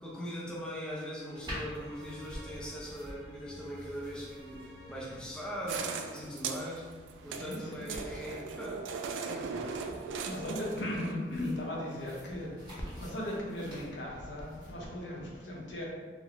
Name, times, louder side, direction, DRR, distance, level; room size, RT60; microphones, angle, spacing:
voice 1, 0.0-5.8 6.1-6.9 7.2-8.9 9.1-9.8, equal, 5° left, -6 dB, 0.4 m, -41 dB
sound 1, 1.3-6.4, left 1 dB, 65° right, 1.3 m, -50 dB
sound 2, 1.4-14.7, equal, 25° right, 1.2 m, -49 dB
sound 3, 5.7-11.1, right 5 dB, 85° right, 0.3 m, -39 dB
voice 2, 7.3-8.0 10.3-12.5 13.0-15.9, left 1 dB, 75° left, -3 dB, 0.8 m, -37 dB
3.7 x 2.0 x 3.4 m, 1.5 s
head